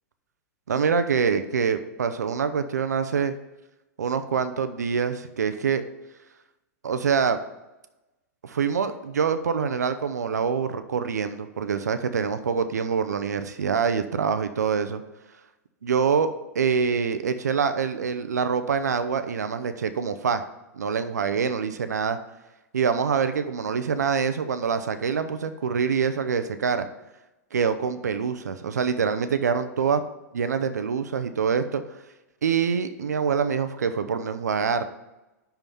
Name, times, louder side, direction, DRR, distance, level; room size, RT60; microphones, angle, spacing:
voice 1, 0.7-3.3 4.0-5.8 6.8-7.4 8.4-15.0 15.8-20.4 20.7-22.2 22.7-26.9 27.5-30.0 30.3-31.8 32.4-34.8, right 6 dB, 85° right, 10 dB, 0.6 m, -25 dB
5.8 x 5.6 x 6.9 m, 1.0 s
hypercardioid pair, 110°, 9 cm